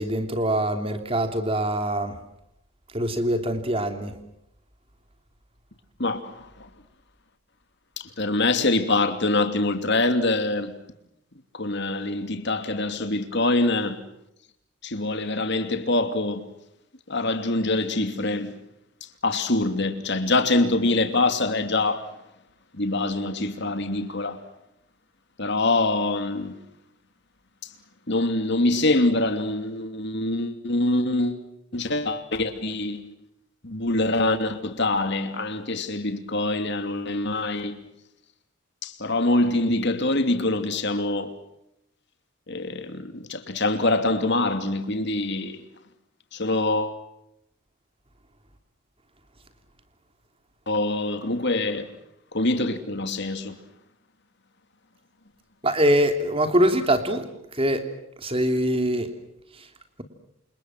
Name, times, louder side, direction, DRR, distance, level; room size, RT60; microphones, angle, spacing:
voice 1, 0.0-2.2 2.9-4.2 55.6-57.3 57.6-57.9 58.2-59.1, right 1 dB, 25° right, 3.2 m, -23 dB
voice 2, 6.0-6.7 8.0-10.7 11.5-14.0 14.8-16.5 17.1-18.5 19.2-22.1 22.8-24.4 25.4-26.6 28.1-31.4 31.7-33.1 33.6-37.8 38.8-41.3 42.5-45.6 46.3-47.0 50.7-51.9 52.3-53.6, left 2 dB, 50° left, 2.9 m, -24 dB
29.0 x 27.5 x 6.1 m
head